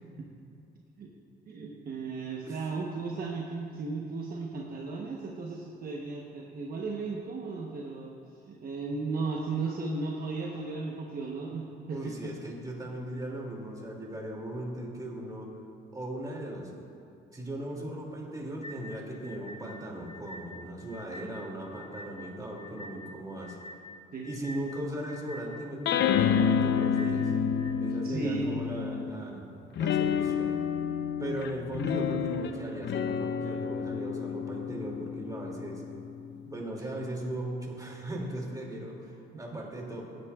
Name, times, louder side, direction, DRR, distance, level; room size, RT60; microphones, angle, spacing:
voice 1, 1.5-8.1 8.5-12.3 24.1-24.3 27.9-28.6 36.5-36.7 39.3-39.6, right 4 dB, 50° right, -1 dB, 1.0 m, -35 dB
voice 2, 11.9-15.5 15.9-16.7 17.3-23.6 24.2-27.3 27.8-30.6 31.2-35.8 36.5-40.1, right 1 dB, 20° right, -2 dB, 2.5 m, -38 dB
sound 1, 18.6-27.8, left 1 dB, 30° left, 0.7 m, -47 dB
sound 2, 25.9-29.2 29.8-36.5, left 7 dB, 65° left, 0.5 m, -29 dB
17.5 x 8.8 x 2.4 m, 2.5 s
cardioid pair, 90°, 20 cm